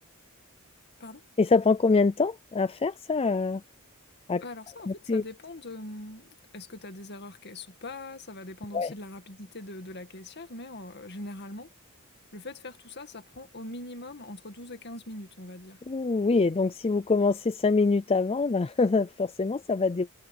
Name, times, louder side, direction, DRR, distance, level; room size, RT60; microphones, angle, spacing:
voice 1, 1.4-3.6 4.3-4.4 4.9-5.2 8.7-8.9 15.9-20.1, left 4 dB, 25° left, 0.4 m, -25 dB
voice 2, 4.4-11.7 12.3-15.8, left 2 dB, 50° left, 2.1 m, -42 dB
head